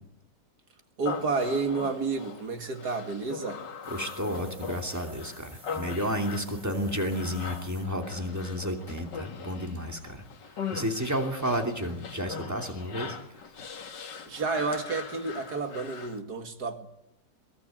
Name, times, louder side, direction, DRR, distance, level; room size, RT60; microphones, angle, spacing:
Human voice, 1.0-16.2, left 6 dB, 85° left, 2.3 m, -41 dB
voice 1, 1.0-3.6 14.3-16.9, right 4 dB, 65° right, 6 dB, 2.5 m, -30 dB
sound 1, 3.8-7.9, right 2 dB, 35° right, 3.5 m, -53 dB
voice 2, 3.9-10.2 10.5-13.2, equal, 10° right, 3 dB, 2.7 m, -31 dB
22.5 x 17.0 x 9.1 m, 0.84 s
omnidirectional pair, 1.9 m